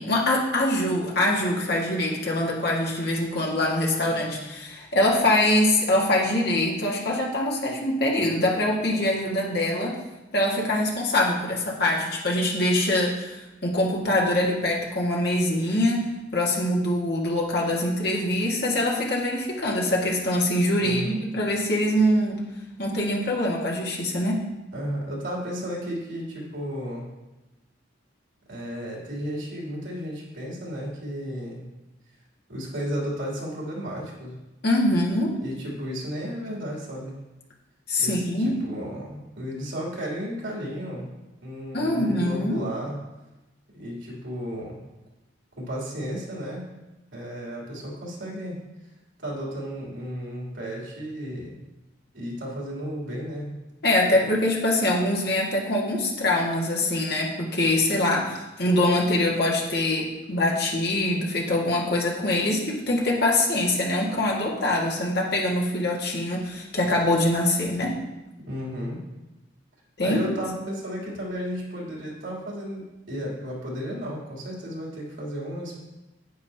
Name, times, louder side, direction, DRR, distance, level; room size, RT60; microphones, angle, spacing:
voice 1, 0.0-10.0 10.3-16.1 16.3-22.4 22.8-24.4 34.6-35.3 37.9-38.6 41.7-42.6 53.8-68.0 70.0-70.4, left 1 dB, 55° left, -3 dB, 1.9 m, -24 dB
voice 2, 20.8-21.2 24.7-27.1 28.5-31.6 32.5-34.3 35.4-37.2 38.0-41.1 41.4-43.0 43.7-44.8 45.6-46.6 47.1-48.6 49.2-51.6 52.1-53.5 54.2-54.3 68.4-69.0 70.0-75.8, equal, 85° right, -4 dB, 3.1 m, -33 dB
9.6 x 9.4 x 2.9 m, 1.0 s
head